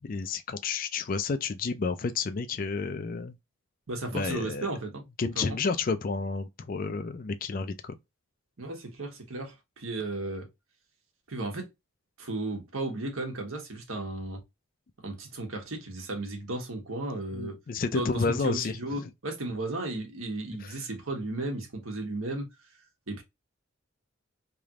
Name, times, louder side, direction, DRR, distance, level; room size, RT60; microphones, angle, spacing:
voice 1, 0.1-3.3 4.1-4.7 5.2-8.0 17.3-18.8 20.6-20.8, left 4 dB, 40° left, 0.4 m, -30 dB
voice 2, 3.9-5.0 5.3-5.6 8.6-10.5 11.3-11.7 12.2-14.4 15.0-17.6 17.9-22.5 23.1-23.2, right 2 dB, 80° right, 1.3 m, -34 dB
3.3 x 3.0 x 2.3 m
head